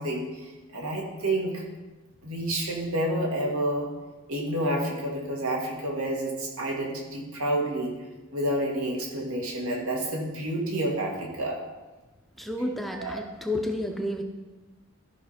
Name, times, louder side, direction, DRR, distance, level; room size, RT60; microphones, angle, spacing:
voice 1, 0.0-1.6 2.2-3.9 4.3-7.9 8.3-11.6 12.9-13.2, right 1 dB, 85° right, -1 dB, 2.1 m, -29 dB
voice 2, 12.4-14.2, left 1 dB, ahead, 3 dB, 0.6 m, -30 dB
13.0 x 5.6 x 4.2 m, 1.2 s
head